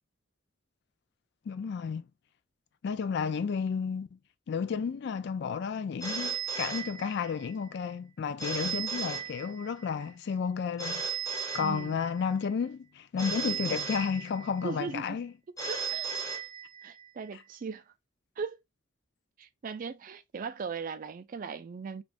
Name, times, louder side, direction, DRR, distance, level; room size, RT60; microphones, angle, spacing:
voice 1, 1.5-2.0 2.8-4.2 4.5-11.0 11.5-15.3, left 6 dB, 55° left, 0.3 m, -32 dB
Telephone, 6.0-7.5 8.4-9.9 10.8-12.3 13.2-14.7 15.6-17.1, right 5 dB, 15° left, 0.8 m, -36 dB
voice 2, 11.6-12.0 14.6-15.2 15.5-16.2 16.8-17.9 18.4-18.6 19.4-22.0, right 5 dB, 40° right, 0.3 m, -38 dB
3.4 x 2.4 x 2.4 m
head